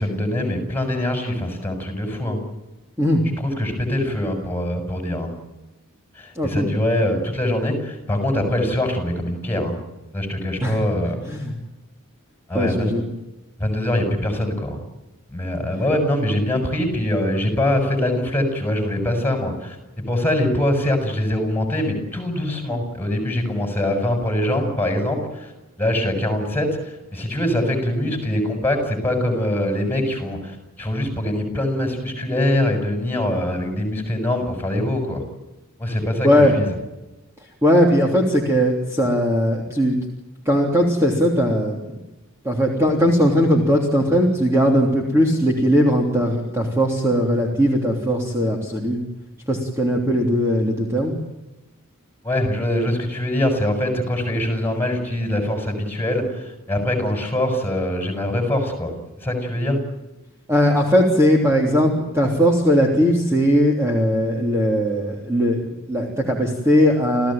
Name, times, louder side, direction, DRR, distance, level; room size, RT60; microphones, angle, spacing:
voice 1, 0.0-2.4 3.4-5.3 6.2-9.8 10.1-11.2 12.5-13.0 13.6-14.8 15.3-25.5 25.8-35.2 35.8-36.8 52.2-59.8, left 1 dB, 10° left, 5 dB, 6.9 m, -23 dB
voice 2, 6.3-6.7 10.6-10.8 11.3-11.5 12.5-13.0 36.2-36.5 37.6-40.0 40.4-41.8 42.4-49.0 49.5-51.1 60.5-65.6 65.9-67.3, equal, 10° right, -1 dB, 3.3 m, -19 dB
29.0 x 16.0 x 9.0 m, 1.0 s
head